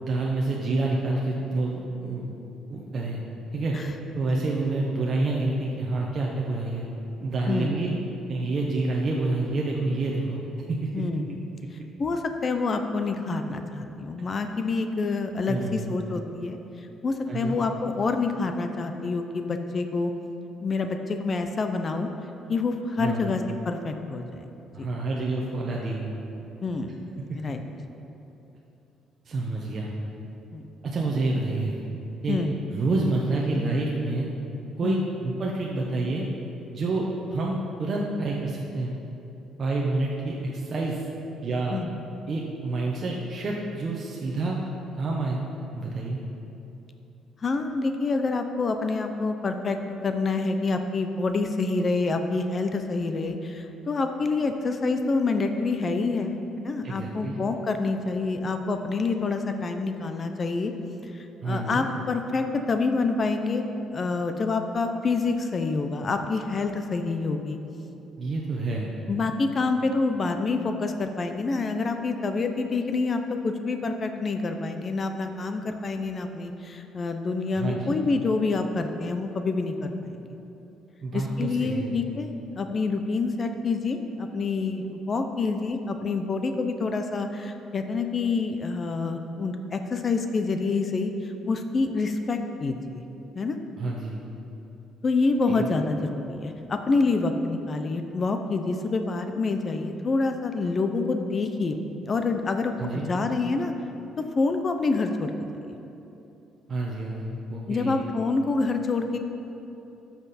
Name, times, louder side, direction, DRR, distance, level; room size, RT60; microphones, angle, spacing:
voice 1, 0.0-2.4 2.7-3.2 3.5-3.7 4.1-6.8 7.2-7.9 8.3-10.9 15.5-15.9 17.3-17.6 23.0-23.4 24.7-26.1 29.2-29.9 30.8-31.7 32.2-32.4 32.7-34.3 34.8-35.0 35.2-36.3 36.7-38.9 39.6-41.1 41.4-41.8 42.3-44.6 44.9-45.4 45.7-46.2 56.8-57.4 61.4-61.8 68.2-68.9 77.6-77.9 81.0-81.9 93.8-94.2 95.5-95.7 102.8-103.1 106.7-108.0, right 2 dB, 40° right, -3 dB, 0.9 m, -28 dB
voice 2, 7.5-7.8 10.9-11.4 12.0-16.6 17.0-20.1 20.6-22.1 22.5-24.5 24.8-24.9 26.6-26.9 27.4-27.6 30.5-30.6 32.3-32.5 34.8-35.0 41.7-41.9 47.4-49.8 50.0-60.7 61.1-63.7 63.9-67.6 69.1-80.3 81.1-93.0 93.3-93.6 95.0-103.7 104.2-105.3 107.7-109.2, left 3 dB, 35° left, 6 dB, 0.6 m, -27 dB
12.5 x 6.0 x 4.2 m, 3.0 s
cardioid pair, 120°, 0 cm